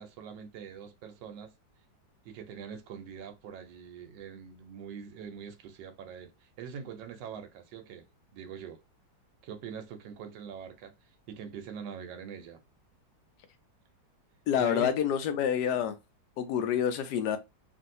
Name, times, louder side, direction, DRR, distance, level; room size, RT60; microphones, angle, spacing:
voice 1, 0.0-1.5 2.2-8.1 8.3-8.8 9.4-10.9 11.3-12.6 14.5-14.9, right 7 dB, 75° right, 1.3 m, -43 dB
voice 2, 14.5-16.0 16.4-17.4, left 9 dB, 70° left, 1.1 m, -27 dB
3.1 x 2.6 x 2.6 m
omnidirectional pair, 2.0 m